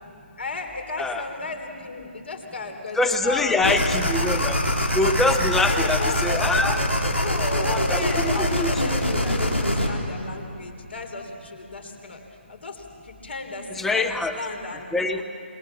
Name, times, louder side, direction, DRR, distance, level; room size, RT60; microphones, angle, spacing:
voice 1, 0.4-4.1 5.6-6.2 7.2-12.2 12.5-15.2, left 3 dB, 65° left, 3 dB, 3.8 m, -34 dB
voice 2, 2.9-4.6 4.9-6.8 7.6-8.7 13.7-14.4 14.9-15.2, left 2 dB, 5° left, 8 dB, 0.8 m, -24 dB
sound 1, 3.6-9.9, left 1 dB, 85° left, 3.6 m, -24 dB
27.0 x 20.5 x 7.4 m, 2.6 s
figure-of-eight pair, 145°, 7 cm